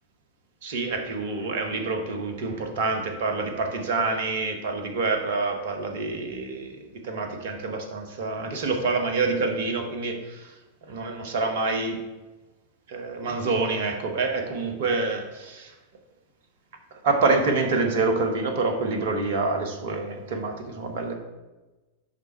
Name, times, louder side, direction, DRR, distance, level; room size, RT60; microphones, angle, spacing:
voice 1, 0.6-10.5 10.8-12.0 12.9-15.7 16.9-21.1, right 3 dB, 55° right, 5 dB, 1.1 m, -27 dB
10.5 x 3.5 x 4.4 m, 1.1 s
figure-of-eight pair, 90°, 0 cm